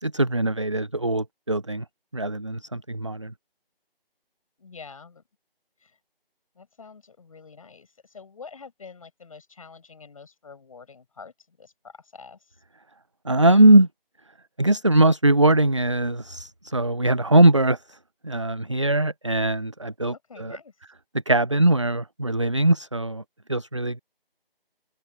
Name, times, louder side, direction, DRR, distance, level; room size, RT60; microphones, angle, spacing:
voice 1, 0.0-1.8 2.1-3.3 13.3-13.9 14.6-17.8 18.2-20.6 21.3-23.2 23.5-24.0, right 1 dB, 30° right, 0.5 m, -21 dB
voice 2, 4.6-5.2 5.8-6.0 6.6-12.6 20.1-20.8, left 5 dB, 35° left, 7.6 m, -46 dB
open air
figure-of-eight pair, 160°, 29 cm